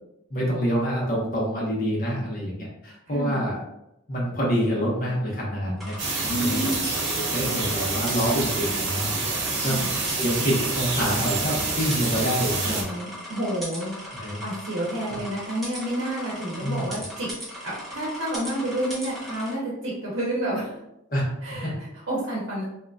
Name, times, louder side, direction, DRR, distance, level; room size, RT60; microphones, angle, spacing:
voice 1, 0.3-3.6 4.1-6.0 6.2-6.6 6.9-9.8 10.2-12.9 14.1-14.4 15.1-15.2 16.6-16.9 21.1-21.2 21.5-21.7, equal, 45° left, -5 dB, 1.1 m, -27 dB
voice 2, 3.1-3.4 6.3-6.8 9.7-9.9 12.6-13.9 14.4-17.3 17.6-20.7 21.4-22.7, right 1 dB, 80° right, -5 dB, 0.8 m, -29 dB
sound 1, 5.8-19.5, equal, ahead, 0.8 m, -39 dB
sound 2, 6.0-12.8, right 3 dB, 55° right, 0.9 m, -27 dB
3.9 x 2.8 x 2.3 m, 0.84 s
head